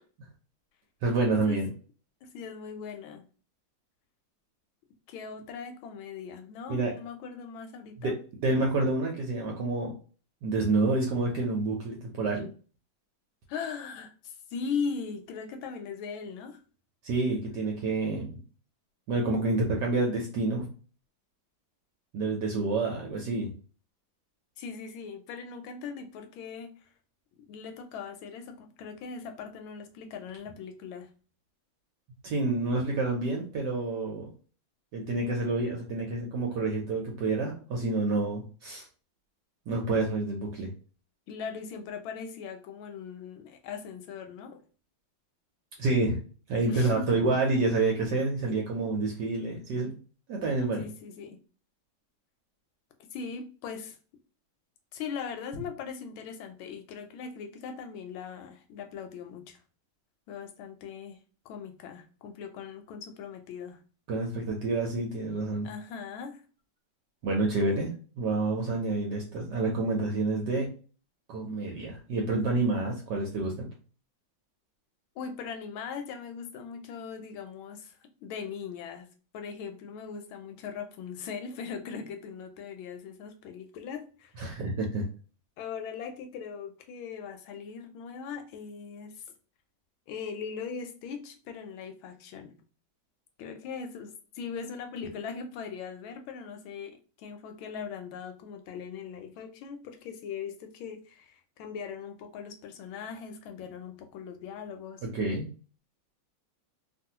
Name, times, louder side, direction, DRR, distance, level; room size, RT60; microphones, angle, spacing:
voice 1, 1.0-1.7 6.7-6.9 8.0-8.2 8.4-9.9 10.4-12.5 17.0-18.4 19.1-20.7 22.1-23.5 32.2-34.3 34.9-38.8 39.7-40.7 45.8-46.2 46.5-49.9 50.3-50.8 64.1-65.7 67.2-67.9 68.2-70.7 71.3-73.7 84.4-85.0 105.1-105.4, right 3 dB, 65° right, 1.1 m, -28 dB
voice 2, 2.2-3.2 5.1-8.2 13.5-16.6 24.6-26.7 27.5-31.1 41.3-44.6 46.6-47.4 50.8-51.4 53.1-54.0 54.9-59.6 60.3-61.2 61.4-63.8 65.6-66.4 75.2-79.1 79.3-84.3 85.6-89.2 90.1-92.6 93.4-105.1, left 6 dB, 80° left, 1.3 m, -40 dB
3.0 x 2.5 x 2.7 m
omnidirectional pair, 2.3 m